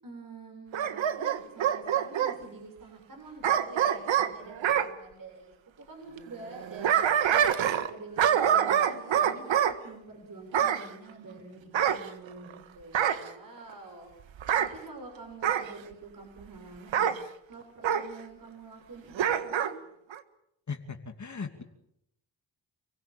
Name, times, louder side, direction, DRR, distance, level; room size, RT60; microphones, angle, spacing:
voice 1, 0.0-6.9 7.3-14.1 14.6-17.1 17.5-19.7, right 3 dB, 45° right, 2 dB, 7.4 m, -47 dB
Bark / Growling, 0.7-2.4 3.4-4.9 6.5-7.9 8.2-9.8 10.5-10.9 11.7-12.5 12.9-13.3 14.4-14.7 15.4-15.7 16.9-17.2 17.8-18.1 19.2-19.7 20.1-20.2, right 9 dB, 80° right, 1.7 m, -25 dB
voice 2, 20.7-21.6, left 5 dB, 40° left, 5 dB, 2.8 m, -38 dB
28.0 x 16.5 x 8.7 m, 0.78 s
cardioid pair, 70°, 45 cm